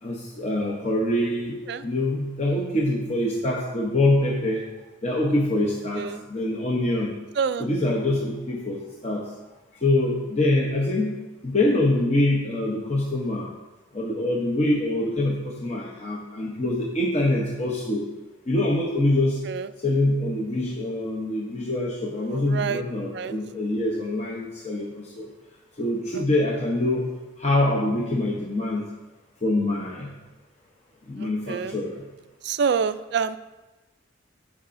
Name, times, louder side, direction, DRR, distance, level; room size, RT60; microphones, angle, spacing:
voice 1, 0.0-4.6 5.0-7.1 7.6-9.2 9.8-11.1 11.4-13.5 13.9-18.0 18.5-19.4 19.8-25.3 25.8-27.1 27.4-28.9 29.4-30.1 31.1-32.0, left 1 dB, 35° left, -3 dB, 0.8 m, -25 dB
voice 2, 7.4-7.7 19.5-19.7 22.3-22.8 23.1-23.4 26.2-26.3 31.2-31.7 32.4-33.4, right 6 dB, 55° right, 13 dB, 0.3 m, -27 dB
14.0 x 4.8 x 2.6 m, 1.1 s
head